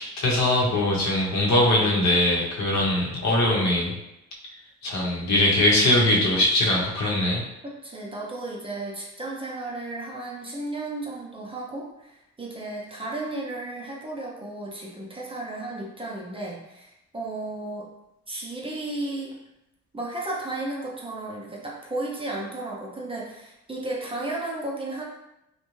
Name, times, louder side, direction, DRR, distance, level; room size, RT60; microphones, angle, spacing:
voice 1, 0.0-3.9 4.8-7.4, left 1 dB, 65° left, -3 dB, 0.8 m, -21 dB
voice 2, 7.6-17.9 18.3-19.3 19.9-25.0, right 2 dB, 20° right, -3 dB, 0.6 m, -34 dB
2.5 x 2.2 x 3.0 m, 0.89 s
cardioid pair, 90°, 30 cm